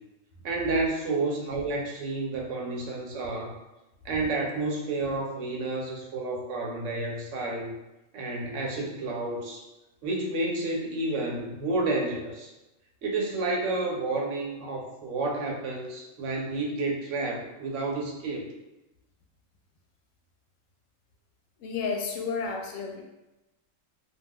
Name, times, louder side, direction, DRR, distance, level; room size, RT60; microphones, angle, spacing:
voice 1, 0.4-3.5 4.0-7.7 8.1-9.6 10.0-12.5 13.0-18.5, right 2 dB, 75° right, 0 dB, 0.9 m, -30 dB
voice 2, 21.6-23.0, left 5 dB, 85° left, 2 dB, 1.0 m, -31 dB
2.4 x 2.3 x 3.5 m, 0.98 s
omnidirectional pair, 1.3 m